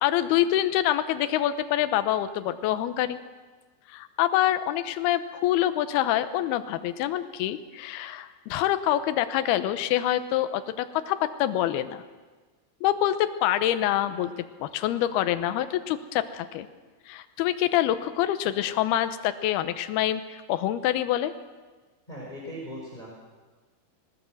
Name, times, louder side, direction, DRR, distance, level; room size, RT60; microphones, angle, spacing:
voice 1, 0.0-3.2 3.9-12.0 12.8-14.3 14.6-16.7 17.1-21.3, left 12 dB, 75° left, 11 dB, 2.7 m, -26 dB
voice 2, 22.1-23.1, equal, 10° left, -4 dB, 4.7 m, -39 dB
20.0 x 19.5 x 7.8 m, 1.3 s
omnidirectional pair, 5.1 m